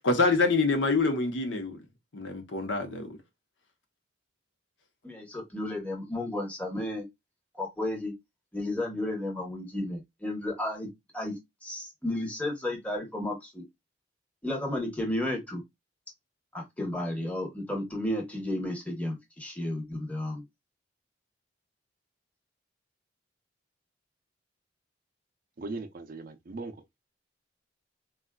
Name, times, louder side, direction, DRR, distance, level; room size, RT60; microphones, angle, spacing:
voice 1, 0.0-1.8 2.1-3.2, left 3 dB, 80° left, 0.9 m, -26 dB
voice 2, 5.0-7.1 7.6-8.1 8.5-13.6 14.4-15.6 16.5-20.4, left 1 dB, 10° left, 0.9 m, -33 dB
voice 3, 25.6-26.7, right 3 dB, 50° right, 0.5 m, -38 dB
3.8 x 2.4 x 2.2 m
head